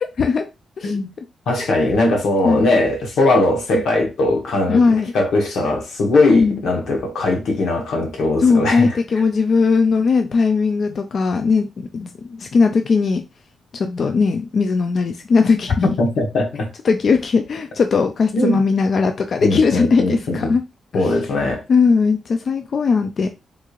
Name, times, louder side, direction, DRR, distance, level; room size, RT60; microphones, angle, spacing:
voice 1, 1.5-9.0 15.8-16.7 18.3-18.6 19.4-20.6 20.9-21.6, left 2 dB, 90° left, 1.0 m, -19 dB
voice 2, 4.7-5.1 6.3-6.6 8.4-11.7 11.9-13.2 13.7-15.8 16.8-20.6 20.9-21.1 21.7-23.3, left 4 dB, 45° left, 0.3 m, -18 dB
3.6 x 3.1 x 2.4 m
wide cardioid pair, 175°, 0 cm